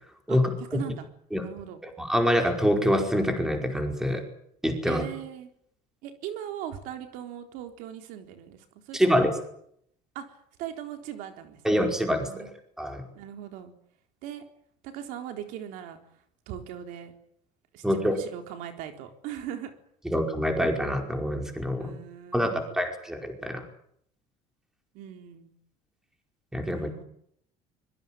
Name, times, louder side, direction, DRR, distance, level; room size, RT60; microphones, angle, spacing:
voice 1, 0.3-1.1 1.4-1.8 4.8-5.5 6.0-9.2 10.1-11.9 12.3-12.5 13.1-13.7 14.2-14.4 14.8-16.0 16.5-17.1 17.7-19.7 21.8-22.8 24.9-25.5 26.7-27.0, right 10 dB, 75° right, 6 dB, 4.0 m, -39 dB
voice 2, 1.8-4.2 4.6-5.0 8.9-9.3 11.6-12.5 12.8-13.0 17.8-18.1 20.0-22.0 22.3-23.6 26.5-26.9, equal, 5° right, 4 dB, 5.0 m, -25 dB
25.0 x 22.5 x 9.0 m, 0.70 s
cardioid pair, 160°, 14 cm